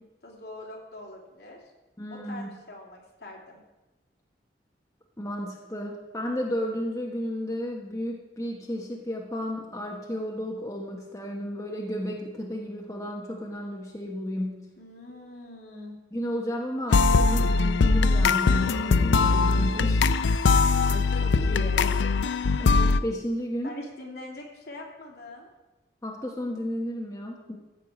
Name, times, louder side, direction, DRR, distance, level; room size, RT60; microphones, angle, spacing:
voice 1, 0.2-1.6 2.1-3.6 14.8-15.9 21.1-22.0 23.6-25.5, left 1 dB, 65° left, -1 dB, 2.8 m, -42 dB
voice 2, 2.0-2.5 5.2-14.7 16.1-20.0 22.6-23.8 26.0-27.6, equal, 20° left, -1 dB, 1.2 m, -33 dB
sound 1, 16.9-23.0, left 4 dB, 90° left, 0.5 m, -21 dB
14.0 x 4.9 x 8.4 m, 1.1 s
head